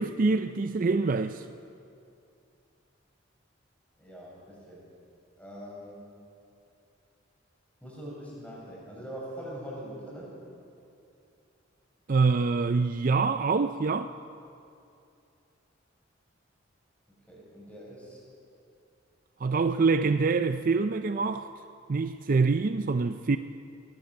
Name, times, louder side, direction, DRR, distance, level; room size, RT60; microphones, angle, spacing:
voice 1, 0.0-1.4 12.1-14.1 19.4-21.5 21.9-23.4, right 4 dB, 45° right, 0.4 m, -25 dB
voice 2, 4.0-4.9 5.4-6.0 7.8-10.3 17.3-18.2, equal, 5° left, 7.0 m, -42 dB
20.0 x 17.0 x 7.8 m
head